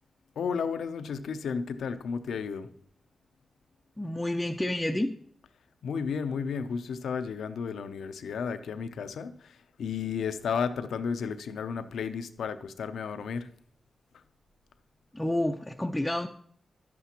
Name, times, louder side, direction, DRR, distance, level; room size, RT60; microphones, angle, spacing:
voice 1, 0.4-2.7 5.8-13.5, left 6 dB, 85° left, 11 dB, 0.5 m, -33 dB
voice 2, 4.0-5.2 15.1-16.3, left 1 dB, 10° left, 3 dB, 0.5 m, -29 dB
10.5 x 8.4 x 2.9 m, 0.62 s
cardioid pair, 50°, 0 cm